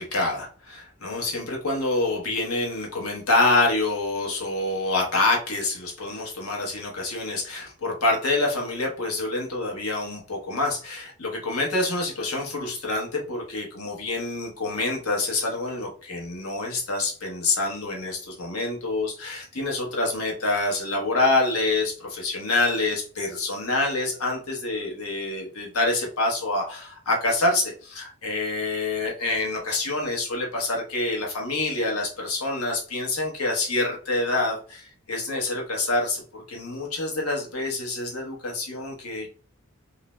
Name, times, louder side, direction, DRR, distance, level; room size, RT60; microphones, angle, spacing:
voice 1, 0.0-39.3, left 2 dB, 85° left, 0 dB, 0.8 m, -26 dB
2.4 x 2.0 x 3.1 m, 0.42 s
head